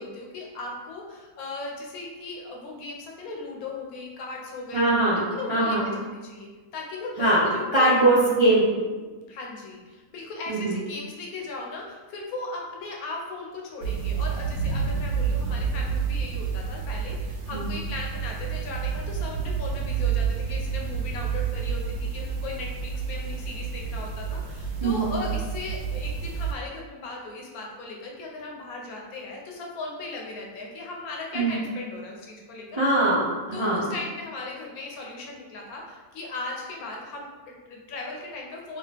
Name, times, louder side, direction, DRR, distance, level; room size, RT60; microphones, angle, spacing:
voice 1, 0.0-4.9 5.3-8.2 9.3-32.8 33.5-38.8, left 3 dB, 75° left, -1 dB, 1.1 m, -37 dB
voice 2, 4.7-5.2 5.5-5.8 7.2-7.5 7.7-8.7 10.5-10.8 17.5-17.7 24.8-25.1 31.3-31.6 32.8-33.9, right 2 dB, 35° right, -9 dB, 0.5 m, -21 dB
sound 1, 13.8-26.5, right 6 dB, 75° right, 1.0 m, -29 dB
2.9 x 2.8 x 3.3 m, 1.3 s
omnidirectional pair, 1.6 m